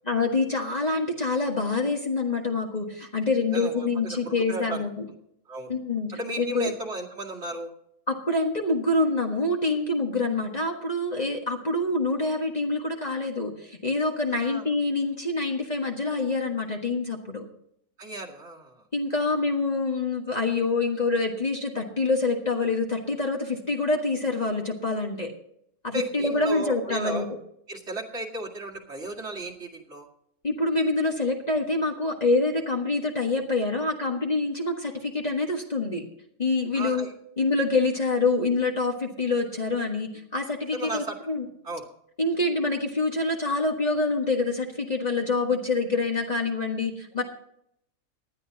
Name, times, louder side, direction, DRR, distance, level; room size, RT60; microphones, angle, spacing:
voice 1, 0.1-5.0 5.7-6.1 6.4-6.7 8.1-17.4 18.9-25.3 25.8-27.3 30.4-36.0 36.4-37.1 37.4-41.5 42.2-47.2, left 3 dB, 30° left, 1 dB, 1.6 m, -26 dB
voice 2, 3.5-4.8 5.5-5.7 6.1-7.7 14.3-14.6 18.0-18.8 25.9-27.3 27.7-30.1 36.7-37.1 40.7-41.2 41.6-41.8, right 2 dB, 50° right, -1 dB, 2.4 m, -35 dB
19.0 x 11.5 x 2.8 m, 0.73 s
omnidirectional pair, 1.5 m